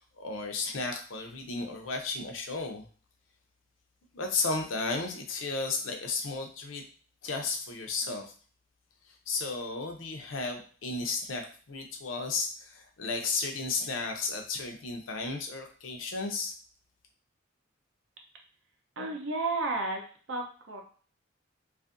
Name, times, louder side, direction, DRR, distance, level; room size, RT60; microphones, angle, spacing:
voice 1, 0.0-2.9 4.1-6.8 7.2-8.2 9.1-16.5, left 3 dB, 70° left, 3 dB, 0.5 m, -34 dB
voice 2, 19.0-20.0 20.3-20.8, right 3 dB, 70° right, 2 dB, 0.6 m, -32 dB
2.6 x 2.4 x 2.5 m, 0.42 s
head